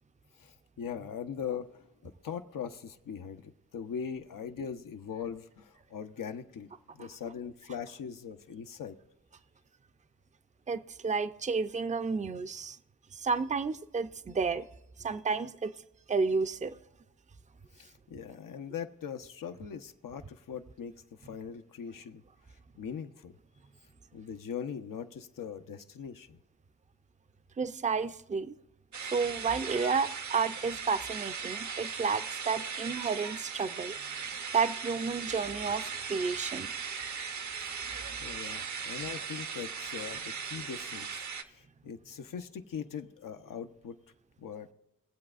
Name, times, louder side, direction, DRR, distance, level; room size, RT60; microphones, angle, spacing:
voice 1, 0.4-8.9 17.7-22.2 22.8-23.3 24.1-26.4 37.6-37.8 38.2-44.0 44.4-44.7, left 7 dB, 80° left, 7 dB, 0.7 m, -41 dB
voice 2, 10.7-12.8 13.1-14.7 15.0-15.7 16.1-16.8 27.6-28.5 29.0-33.9 34.5-36.7, right 5 dB, 20° right, 12 dB, 0.5 m, -31 dB
sound 1, 28.9-41.4, right 6 dB, 60° right, 0.7 m, -38 dB
21.5 x 7.8 x 2.4 m, 0.92 s
cardioid pair, 55°, 33 cm